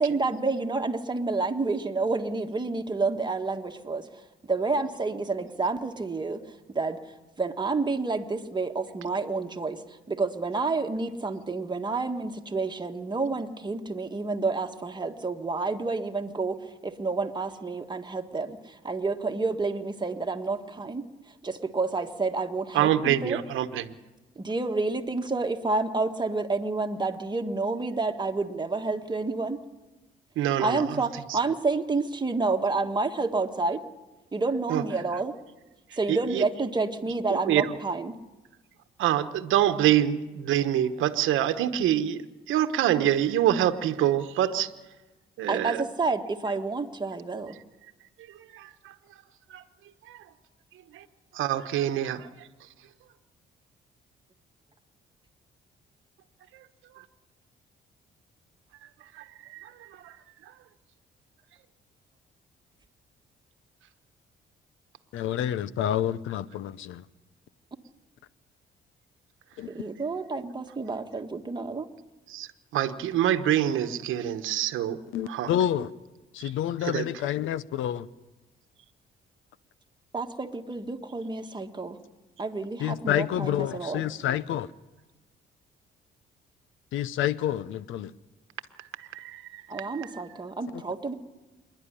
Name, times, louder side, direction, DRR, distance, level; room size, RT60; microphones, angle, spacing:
voice 1, 0.0-23.4 24.3-29.6 30.6-33.8 34.3-35.4 35.9-38.1 45.5-47.6 69.7-71.9 80.1-82.0 82.4-84.0 89.7-91.1, right 3 dB, 20° right, 5 dB, 1.6 m, -29 dB
voice 2, 22.7-23.9 30.4-30.8 34.7-34.8 36.1-36.4 37.5-37.6 39.0-42.2 42.5-44.7 45.4-45.8 48.5-48.6 49.5-49.6 50.1-50.2 50.9-51.0 51.3-52.3 59.2-59.3 59.5-59.7 60.0-60.2 72.3-72.5 72.7-75.0 75.3-75.5 76.8-77.0 89.1-90.1, right 11 dB, 85° right, 9 dB, 1.1 m, -25 dB
voice 3, 65.1-67.0 69.6-69.7 75.1-75.9 76.3-78.1 82.8-84.7 86.9-88.1, left 11 dB, 80° left, 18 dB, 0.7 m, -28 dB
26.5 x 11.0 x 10.0 m, 1.1 s
cardioid pair, 90°, 20 cm